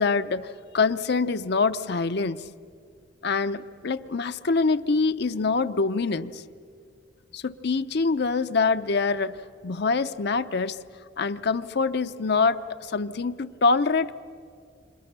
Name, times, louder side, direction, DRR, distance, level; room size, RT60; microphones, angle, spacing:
voice 1, 0.0-2.4 3.2-6.4 7.3-9.4 9.6-10.8 11.2-14.1, left 4 dB, 60° left, 11 dB, 0.6 m, -25 dB
29.0 x 26.5 x 6.8 m, 2.3 s
head